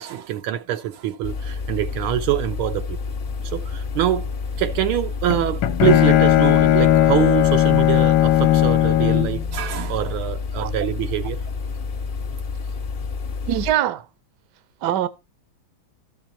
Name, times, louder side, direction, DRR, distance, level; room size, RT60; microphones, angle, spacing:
voice 1, 0.0-3.0 3.5-4.3 4.6-11.4, right 12 dB, 85° right, 1.6 m, -24 dB
sound 1, 1.2-13.7, left 4 dB, 50° left, 0.6 m, -29 dB
Bowed string instrument, 5.3-9.5, left 13 dB, 70° left, 1.4 m, -17 dB
voice 2, 13.5-14.0 14.8-15.1, right 12 dB, 65° right, 1.2 m, -22 dB
13.0 x 6.1 x 4.2 m
omnidirectional pair, 2.3 m